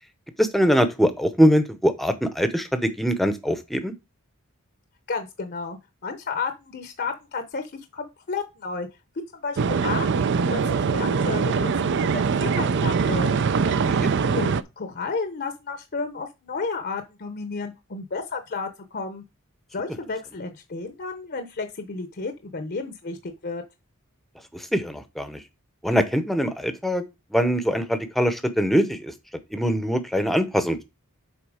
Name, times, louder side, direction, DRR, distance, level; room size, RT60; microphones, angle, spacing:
voice 1, 0.4-3.9 13.7-14.1 24.5-25.4 25.8-27.0 27.3-29.1 29.5-30.8, equal, ahead, 0.7 m, -23 dB
voice 2, 5.1-8.9 9.3-13.3 14.3-19.2 19.7-23.6, left 4 dB, 45° left, 0.7 m, -32 dB
sound 1, 9.6-14.6, right 5 dB, 55° right, 0.4 m, -23 dB
7.2 x 4.2 x 4.9 m
head